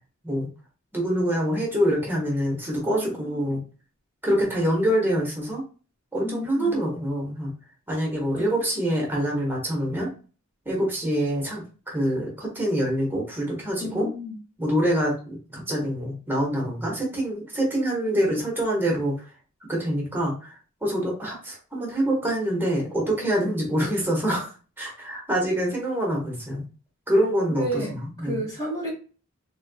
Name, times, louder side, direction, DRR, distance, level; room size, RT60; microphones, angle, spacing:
voice 1, 0.9-3.6 4.2-5.6 6.1-7.5 7.9-10.1 10.6-14.1 14.6-19.1 19.7-24.5 24.8-26.6 27.1-28.4, equal, 10° right, -3 dB, 1.3 m, -25 dB
voice 2, 2.8-3.6 6.2-6.7 8.3-8.5 13.8-14.4 27.5-28.9, equal, 20° left, -9 dB, 2.0 m, -32 dB
3.8 x 3.4 x 2.2 m, 0.35 s
head